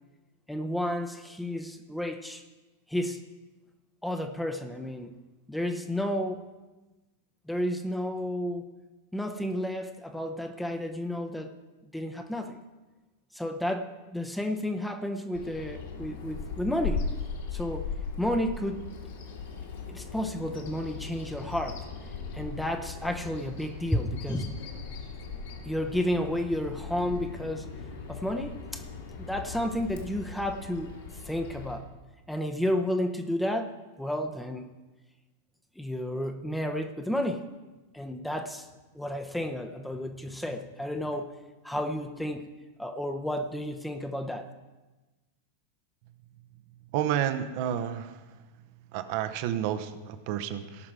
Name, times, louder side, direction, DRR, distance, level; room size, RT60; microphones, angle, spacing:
voice 1, 0.5-2.4 2.9-3.2 4.0-5.2 5.5-6.4 7.5-8.7 9.1-11.5 11.9-12.6 13.3-17.1 17.5-17.9 18.2-19.0 19.9-21.8 22.3-24.6 25.6-27.7 28.1-28.8 29.2-30.9 31.2-31.9 32.3-34.7 35.8-37.5 37.9-38.7 38.9-41.3 41.6-42.5 42.8-44.4, left 1 dB, 5° left, 5 dB, 0.8 m, -31 dB
Bird vocalization bird call bird song, 15.3-31.8, left 5 dB, 60° left, 2.4 m, -39 dB
voice 2, 46.9-48.4 48.9-50.9, right 10 dB, 45° right, 9 dB, 0.9 m, -31 dB
18.0 x 6.1 x 4.7 m, 1.2 s
figure-of-eight pair, 90°, 0 cm